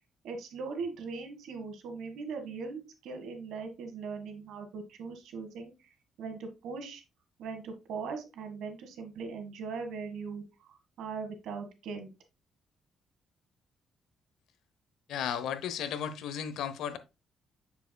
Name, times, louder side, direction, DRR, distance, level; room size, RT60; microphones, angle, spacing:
voice 1, 0.2-5.9 6.2-7.0 7.4-12.1, right 4 dB, 75° right, 1.5 m, -40 dB
voice 2, 15.1-17.0, left 8 dB, 80° left, 0.7 m, -34 dB
6.9 x 6.8 x 2.2 m
cardioid pair, 165°, 0 cm